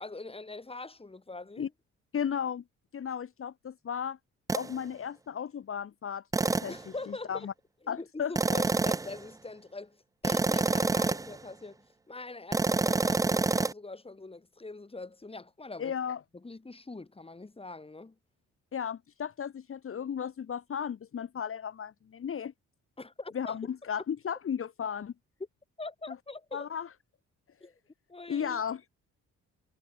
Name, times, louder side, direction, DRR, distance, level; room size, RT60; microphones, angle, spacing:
voice 1, 0.0-1.7 6.7-7.5 7.8-15.9 16.3-18.2 23.0-23.6 25.8-26.7 27.6-27.7 28.1-28.6, left 3 dB, 20° left, 3.2 m, -43 dB
voice 2, 2.1-2.6 2.9-4.2 4.5-6.7 7.3-7.5 7.9-8.3 15.8-16.2 18.7-22.5 23.3-25.1 26.5-26.9 28.3-28.8, left 8 dB, 45° left, 1.6 m, -34 dB
sound 1, 4.5-4.7 6.3-6.8 8.3-9.2 10.2-11.4 12.5-13.7, right 3 dB, 10° right, 0.4 m, -27 dB
cardioid pair, 90°, 30 cm